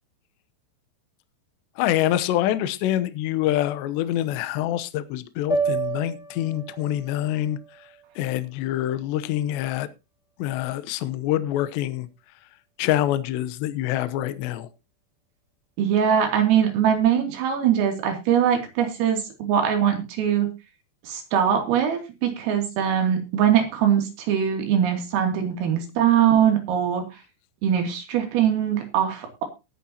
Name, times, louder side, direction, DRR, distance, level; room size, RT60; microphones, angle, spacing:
voice 1, 1.8-7.9 8.2-9.9 10.4-12.1 12.8-14.7, left 13 dB, 75° left, 13 dB, 2.8 m, -26 dB
sound 1, 5.5-9.8, right 4 dB, 15° left, 3.6 m, -32 dB
voice 2, 15.8-20.5 21.0-27.0 27.6-29.4, right 9 dB, 85° right, 4 dB, 5.4 m, -22 dB
19.5 x 9.1 x 2.9 m, 0.27 s
omnidirectional pair, 5.8 m